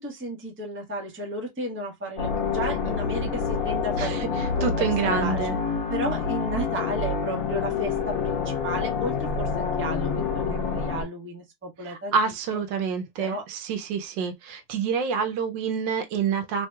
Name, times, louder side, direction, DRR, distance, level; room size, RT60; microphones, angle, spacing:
voice 1, 0.0-4.7 5.0-5.5 5.9-12.1 13.2-13.4, right 1 dB, 10° right, 0.6 m, -33 dB
sound 1, 2.2-11.0, left 5 dB, 50° left, 1.4 m, -27 dB
voice 2, 4.0-5.6 11.8-16.7, right 6 dB, 75° right, 1.2 m, -27 dB
3.4 x 2.8 x 2.2 m
omnidirectional pair, 2.1 m